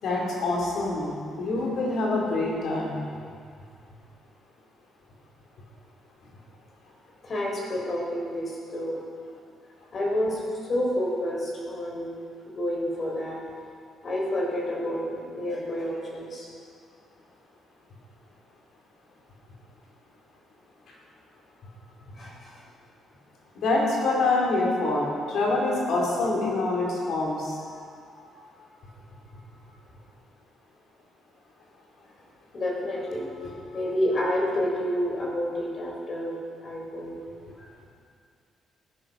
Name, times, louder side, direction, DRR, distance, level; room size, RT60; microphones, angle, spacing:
voice 1, 0.0-3.0 23.5-27.6 33.4-33.5, left 2 dB, 70° left, -3 dB, 4.5 m, -26 dB
voice 2, 7.2-9.0 9.9-10.4 10.7-12.1 12.4-13.4 14.0-16.5 22.2-22.6 27.7-28.6 32.5-37.2 37.6-37.7, left 1 dB, 45° left, -3 dB, 4.5 m, -29 dB
15.5 x 10.0 x 6.5 m, 2.3 s
cardioid pair, 90°, 0 cm